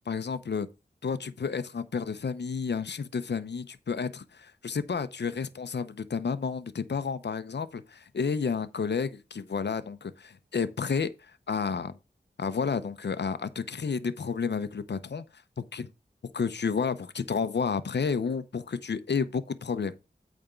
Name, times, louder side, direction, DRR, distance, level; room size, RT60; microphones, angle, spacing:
voice 1, 0.1-0.7 1.0-12.0 12.4-15.9 16.3-19.9, left 5 dB, 75° left, 0.7 m, -31 dB
8.8 x 3.6 x 6.6 m
wide cardioid pair, 65°, 18 cm